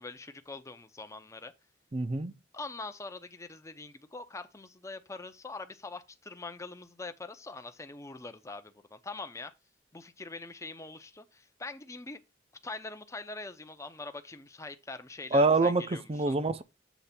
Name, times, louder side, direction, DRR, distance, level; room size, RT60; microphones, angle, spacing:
voice 1, 0.0-1.5 2.5-9.5 9.9-12.2 12.6-16.4, left 3 dB, 15° left, 0.6 m, -43 dB
voice 2, 1.9-2.3 15.3-16.6, right 3 dB, 30° right, 0.5 m, -26 dB
8.1 x 3.2 x 5.8 m
head